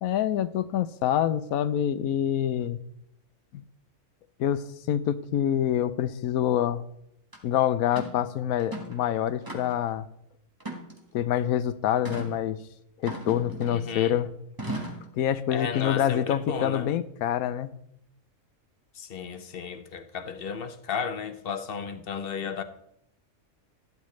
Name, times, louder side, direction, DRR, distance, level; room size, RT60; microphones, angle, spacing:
voice 1, 0.0-2.8 3.5-3.6 4.4-6.8 7.4-10.1 11.1-12.6 13.0-14.3 15.2-17.7, left 10 dB, 90° left, 1.1 m, -26 dB
sound 1, 7.3-7.4 8.0-8.2 8.6-9.0 9.5-9.9 10.6-11.3 12.0-12.3 13.1-13.9 14.6-15.1, right 1 dB, 15° right, 1.4 m, -37 dB
voice 2, 13.7-14.2 15.5-16.9 19.0-22.6, left 6 dB, 50° left, 0.8 m, -34 dB
12.0 x 12.0 x 3.2 m
omnidirectional pair, 1.5 m